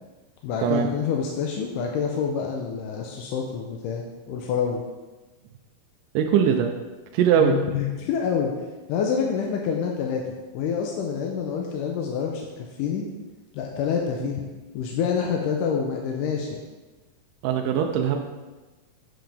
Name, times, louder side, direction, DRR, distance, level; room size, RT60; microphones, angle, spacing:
voice 1, 0.4-4.8 7.3-8.5 8.9-13.1 13.5-14.5 14.7-16.6, left 7 dB, 75° left, 0 dB, 2.1 m, -27 dB
voice 2, 6.2-6.7 7.1-7.6 17.4-18.2, right 8 dB, 80° right, 3 dB, 2.0 m, -21 dB
7.6 x 7.6 x 3.4 m, 1.2 s
omnidirectional pair, 4.1 m